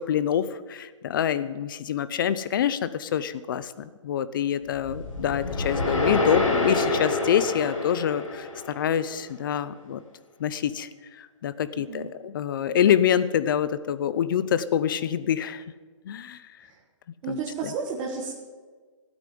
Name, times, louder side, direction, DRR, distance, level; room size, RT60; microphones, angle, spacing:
voice 1, 0.0-10.0 10.4-15.6 16.0-16.4 17.3-17.7, left 9 dB, 40° left, 15 dB, 0.7 m, -26 dB
sound 1, 4.7-9.0, left 2 dB, 85° left, 4.0 m, -27 dB
voice 2, 11.8-12.1 16.7-16.8 17.2-18.3, right 5 dB, 20° right, -4 dB, 1.5 m, -32 dB
16.0 x 9.1 x 7.7 m, 1.5 s
hypercardioid pair, 160°, 17 cm